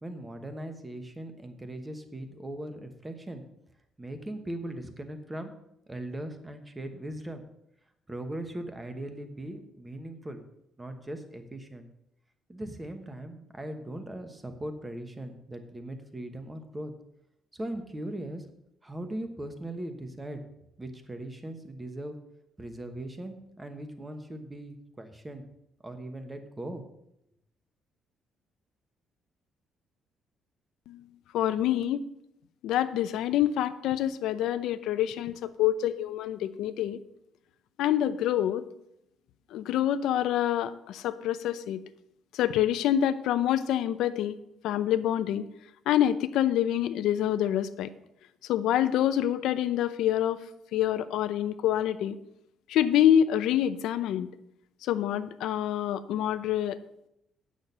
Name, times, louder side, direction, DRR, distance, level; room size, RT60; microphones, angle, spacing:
voice 1, 0.0-3.4 4.0-5.5 5.9-7.4 8.1-10.4 10.8-11.9 12.5-16.9 17.5-18.5 18.8-20.4 20.8-22.1 22.6-25.4 25.8-26.8, right 1 dB, 10° right, 7 dB, 1.0 m, -39 dB
voice 2, 31.3-32.0 32.6-37.0 37.8-38.7 39.5-41.8 42.3-44.3 44.6-45.4 45.9-47.9 48.5-50.4 50.7-52.2 52.7-54.3 54.8-56.8, left 11 dB, 90° left, 11 dB, 0.6 m, -26 dB
8.9 x 6.3 x 6.7 m, 0.81 s
cardioid pair, 160°, 0 cm